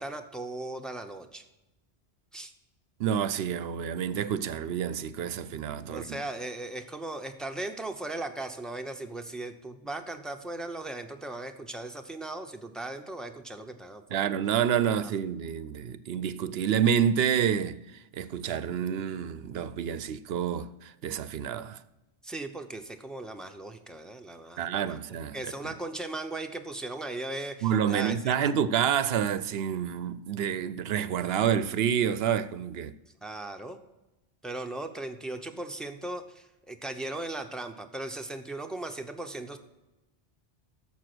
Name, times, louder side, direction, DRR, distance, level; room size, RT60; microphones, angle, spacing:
voice 1, 0.0-1.4 2.3-2.5 5.9-14.3 22.2-25.0 25.3-28.3 33.2-33.8 34.4-39.6, right 2 dB, ahead, 0.7 m, -38 dB
voice 2, 3.0-6.2 14.1-21.8 24.6-25.4 25.6-25.7 27.6-32.9, right 8 dB, 70° right, 0.8 m, -28 dB
11.5 x 7.1 x 6.1 m
omnidirectional pair, 1.1 m